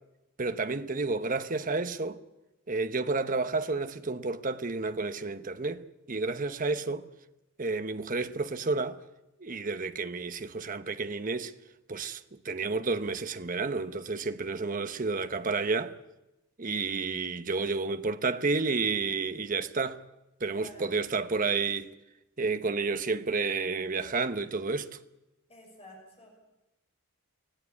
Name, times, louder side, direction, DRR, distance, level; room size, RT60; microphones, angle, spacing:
voice 1, 0.4-2.2 2.7-7.1 7.6-9.0 9.4-11.5 11.9-15.9 16.6-20.0 20.4-21.9 22.4-25.0, right 4 dB, 35° right, 0.9 m, -31 dB
voice 2, 20.5-21.0 25.5-26.4, left 1 dB, 25° left, 6.4 m, -51 dB
25.5 x 16.5 x 8.5 m
head